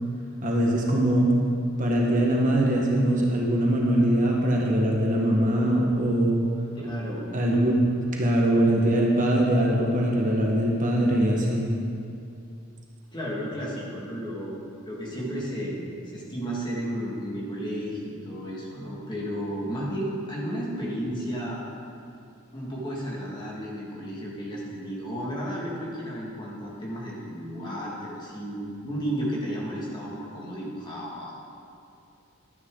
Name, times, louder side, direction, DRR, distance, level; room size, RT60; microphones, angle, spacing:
voice 1, 0.4-1.3 1.8-6.4 7.3-7.7 8.2-11.7, right 1 dB, 40° right, -2 dB, 1.4 m, -22 dB
voice 2, 6.8-7.3 13.1-15.8 16.1-21.6 22.5-31.3, equal, 20° left, -5 dB, 2.0 m, -33 dB
12.5 x 9.6 x 3.8 m, 2.5 s
head